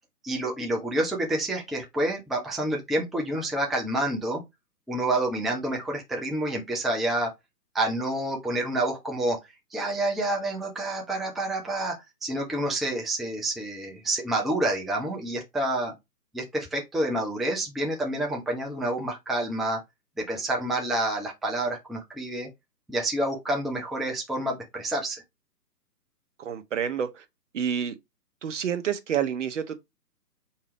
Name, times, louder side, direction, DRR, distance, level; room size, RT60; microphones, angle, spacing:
voice 1, 0.2-4.4 4.9-7.3 7.7-9.4 9.7-11.9 12.2-15.9 16.3-19.8 20.2-22.5 22.9-25.2, right 1 dB, ahead, 0.3 m, -28 dB
voice 2, 26.4-27.2 27.5-27.9 28.4-29.8, right 8 dB, 50° right, 0.8 m, -28 dB
4.6 x 2.8 x 3.2 m
hypercardioid pair, 155°, 49 cm